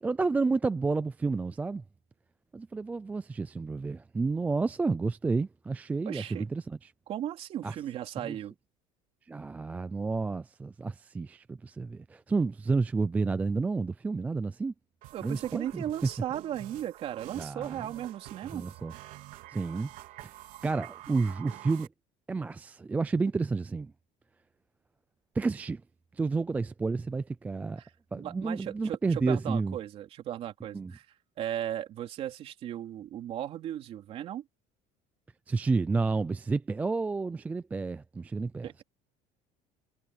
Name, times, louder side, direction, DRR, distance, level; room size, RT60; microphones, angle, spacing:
voice 1, 0.0-1.8 2.5-6.9 7.6-7.7 8.2-8.4 9.3-14.7 15.2-15.8 17.4-17.8 18.5-18.9 19.5-19.9 20.2-20.3 20.6-21.9 22.3-23.9 25.3-25.8 26.1-27.8 28.1-29.8 30.7-30.9 35.5-38.8, right 4 dB, 10° right, 0.3 m, -30 dB
voice 2, 6.1-6.5 7.1-8.5 15.1-18.7 27.8-31.1 31.4-34.4 38.6-38.8, right 11 dB, 40° right, 3.6 m, -36 dB
sound 1, 15.0-21.9, right 16 dB, 65° right, 3.4 m, -48 dB
cardioid pair, 175°, 15 cm